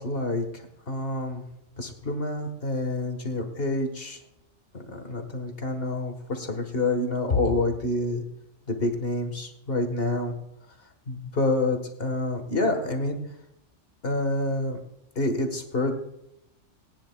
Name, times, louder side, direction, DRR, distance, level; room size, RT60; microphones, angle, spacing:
voice 1, 0.0-1.4 1.8-4.2 4.7-8.2 8.7-10.3 11.1-13.2 14.0-14.8 15.1-15.9, left 2 dB, 50° left, 5 dB, 1.6 m, -27 dB
20.0 x 9.9 x 2.3 m, 0.84 s
omnidirectional pair, 1.3 m